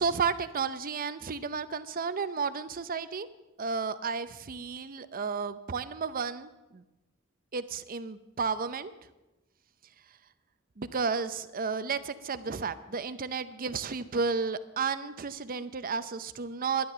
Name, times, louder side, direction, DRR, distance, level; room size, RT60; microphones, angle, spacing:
voice 1, 0.0-3.3 3.6-6.8 7.5-8.9 10.8-16.9, right 5 dB, 40° right, 13 dB, 0.6 m, -32 dB
12.0 x 10.5 x 6.7 m, 1.0 s
head